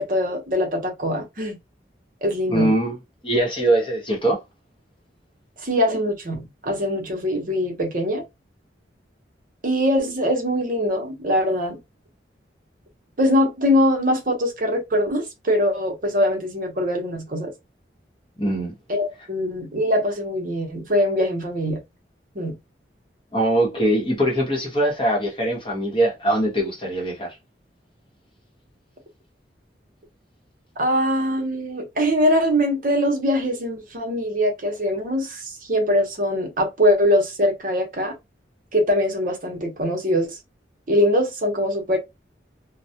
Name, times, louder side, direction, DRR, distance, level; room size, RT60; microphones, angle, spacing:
voice 1, 0.0-1.6 2.2-2.7 5.6-8.2 9.6-11.8 13.2-17.5 18.9-21.8 22.3-22.5 30.8-38.1 38.7-40.4 40.9-42.0, equal, 45° right, 0.7 m, -22 dB
voice 2, 2.5-3.0 3.2-4.4 18.4-18.7 23.3-27.4, right 1 dB, 25° left, 0.8 m, -22 dB
2.2 x 2.0 x 2.7 m
head